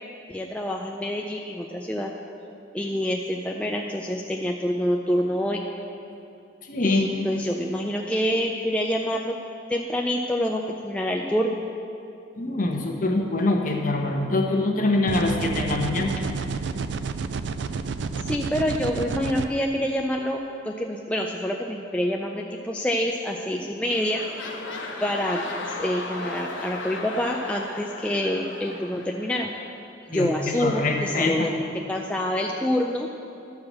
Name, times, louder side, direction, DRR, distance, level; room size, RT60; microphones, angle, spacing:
voice 1, 0.3-2.1 2.7-5.6 6.8-9.4 9.7-11.6 18.2-20.4 20.7-24.2 25.0-29.5 30.1-33.1, equal, 5° left, 0 dB, 0.3 m, -27 dB
voice 2, 6.7-7.0 12.4-16.1 30.1-31.5, left 2 dB, 45° left, 1 dB, 1.0 m, -24 dB
sound 1, 15.1-19.5, right 5 dB, 65° right, 0.4 m, -30 dB
sound 2, 23.3-23.6 23.8-29.7 30.3-30.4, left 2 dB, 75° left, 1.0 m, -36 dB
12.0 x 4.8 x 7.4 m, 2.7 s
head